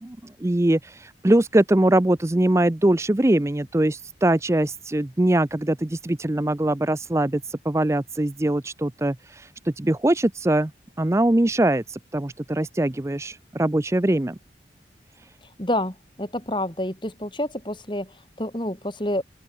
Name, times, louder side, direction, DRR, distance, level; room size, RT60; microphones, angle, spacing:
voice 1, 0.0-10.7 11.0-14.4, right 1 dB, 15° right, 0.5 m, -22 dB
voice 2, 15.6-19.2, left 1 dB, 25° left, 4.0 m, -28 dB
open air
head